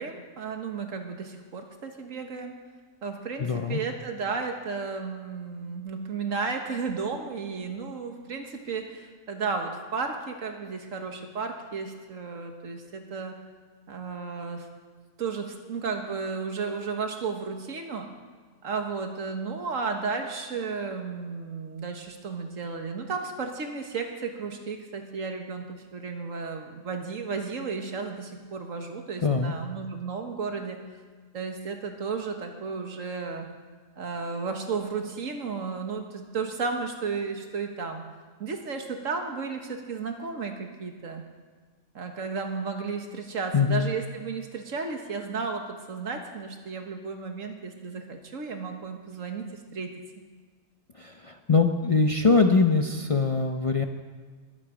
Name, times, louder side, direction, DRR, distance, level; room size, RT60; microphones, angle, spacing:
voice 1, 0.0-2.6 3.0-13.4 13.9-14.7 15.2-18.1 18.6-30.8 31.3-33.5 34.0-38.0 38.4-41.2 42.0-49.9, right 4 dB, 85° right, 4 dB, 1.7 m, -33 dB
voice 2, 3.4-3.8 29.2-29.5 43.5-43.9 50.9-53.8, left 4 dB, 35° left, 5 dB, 0.5 m, -23 dB
21.0 x 8.7 x 5.0 m, 1.5 s
omnidirectional pair, 1.3 m